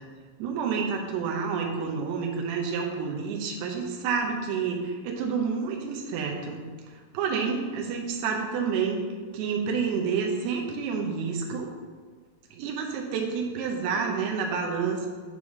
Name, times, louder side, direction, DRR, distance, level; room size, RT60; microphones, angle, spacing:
voice 1, 0.4-6.6 6.9-9.0 9.3-11.7 12.5-15.1, right 5 dB, 85° right, 0 dB, 2.3 m, -29 dB
10.0 x 3.6 x 6.2 m, 1.5 s
omnidirectional pair, 5.8 m